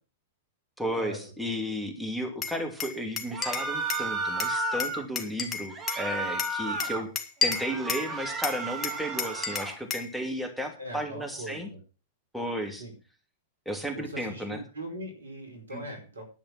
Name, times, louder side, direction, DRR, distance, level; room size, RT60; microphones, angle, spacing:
voice 1, 0.8-7.1 7.4-11.7 12.3-12.8 13.6-14.6 15.7-15.8, equal, ahead, 3 dB, 2.8 m, -33 dB
Glass, 2.4-4.1 4.4-6.0 6.4-8.1 8.4-10.1, left 5 dB, 25° left, 1.9 m, -32 dB
sound 1, 3.3-5.0 5.7-7.0 7.4-9.8, right 2 dB, 25° right, 3.6 m, -33 dB
voice 2, 10.8-11.8 12.8-12.9 13.9-16.2, right 1 dB, 85° right, 4 dB, 4.7 m, -40 dB
11.0 x 8.6 x 5.9 m, 0.35 s
hypercardioid pair, 100°, 0 cm